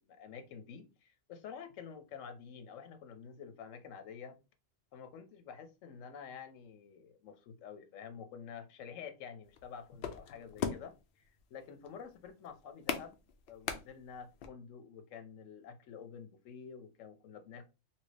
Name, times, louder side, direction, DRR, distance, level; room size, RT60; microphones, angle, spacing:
voice 1, 0.0-4.4 4.9-11.2 11.5-13.2 13.5-17.7, left 7 dB, 85° left, 1.0 m, -49 dB
sound 1, 9.4-14.5, left 7 dB, 60° left, 0.6 m, -40 dB
2.8 x 2.7 x 3.2 m
omnidirectional pair, 1.3 m